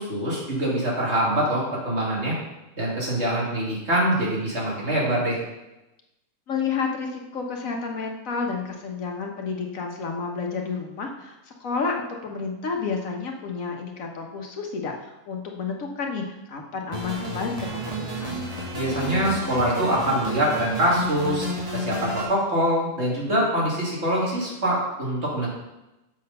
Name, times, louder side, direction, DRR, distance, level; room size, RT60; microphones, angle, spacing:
voice 1, 0.0-2.3 2.8-5.4 18.7-21.5 21.7-25.5, right 1 dB, 50° right, -5 dB, 3.0 m, -24 dB
voice 2, 6.5-18.3, left 5 dB, 70° left, 2 dB, 1.5 m, -30 dB
sound 1, 16.9-22.2, equal, 25° right, 2.1 m, -31 dB
7.5 x 6.5 x 5.4 m, 0.98 s
omnidirectional pair, 1.5 m